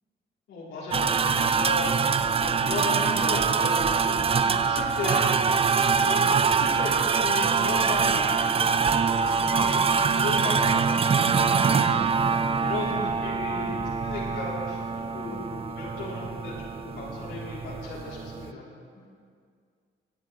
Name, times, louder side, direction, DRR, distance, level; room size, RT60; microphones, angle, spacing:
voice 1, 0.5-4.2 4.6-5.2 6.0-11.0 11.3-14.8 15.1-18.7, left 2 dB, 80° left, -7 dB, 3.6 m, -35 dB
sound 1, 0.9-18.5, right 5 dB, 30° right, 0.4 m, -24 dB
voice 2, 12.8-13.3 13.6-14.0 14.9-15.5 18.9-19.1, left 2 dB, 35° left, -5 dB, 2.7 m, -47 dB
23.0 x 8.2 x 3.2 m, 2.1 s
cardioid pair, 90°, 20 cm